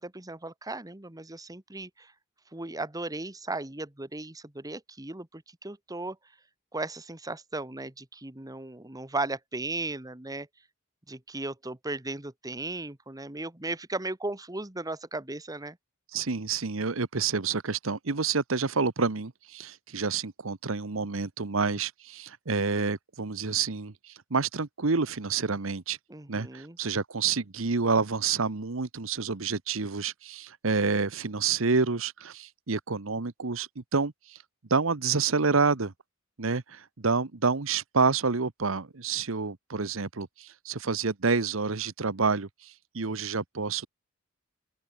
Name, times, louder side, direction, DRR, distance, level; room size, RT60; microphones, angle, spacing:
voice 1, 0.0-2.1 2.5-6.2 6.7-10.5 11.1-15.8 26.1-26.8, right 2 dB, 20° right, 1.6 m, -36 dB
voice 2, 16.1-26.0 26.3-34.4 34.7-35.9 36.4-43.9, right 4 dB, 70° right, 1.1 m, -28 dB
open air
head